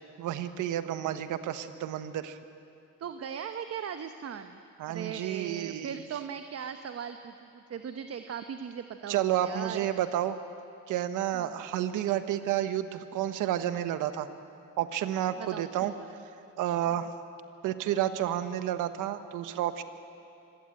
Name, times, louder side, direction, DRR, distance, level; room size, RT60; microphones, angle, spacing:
voice 1, 0.2-2.4 4.8-6.0 9.1-10.4 10.9-14.3 14.8-15.9 16.6-17.1 17.6-19.8, right 11 dB, 90° right, 11 dB, 1.2 m, -30 dB
voice 2, 3.0-4.6 4.9-10.0 11.3-11.6 15.4-15.9, right 8 dB, 55° right, 8 dB, 1.1 m, -39 dB
25.0 x 16.5 x 9.0 m, 2.7 s
cardioid pair, 90°, 30 cm